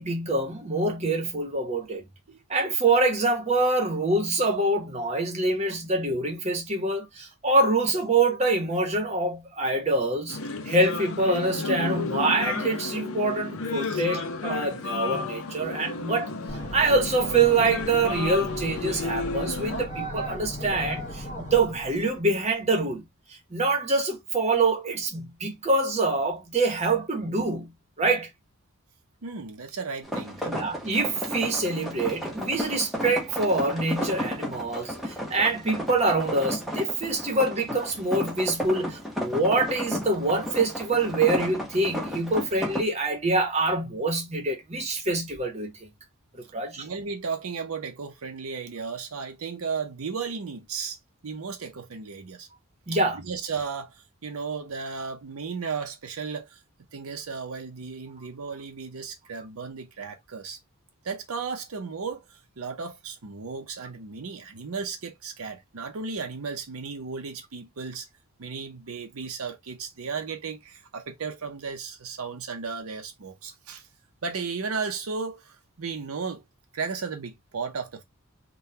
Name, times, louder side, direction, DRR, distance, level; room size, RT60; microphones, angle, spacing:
voice 1, 0.0-2.0 2.5-10.4 10.6-16.3 16.7-23.0 23.3-28.3 30.4-45.7 46.3-46.9 52.9-53.2, right 2 dB, 30° right, 0.9 m, -25 dB
sound 1, 10.3-19.9, left 3 dB, 70° left, 0.6 m, -32 dB
trafic light, 16.5-22.3, equal, 35° left, 1.1 m, -36 dB
voice 2, 29.2-30.5 32.7-32.8 46.8-52.5 53.1-56.6 56.9-60.6 61.0-68.1 68.4-73.9 74.2-76.4 76.7-78.0, right 5 dB, 75° right, 0.6 m, -35 dB
sound 2, 30.0-42.8, equal, ahead, 0.8 m, -33 dB
3.7 x 2.3 x 2.7 m
head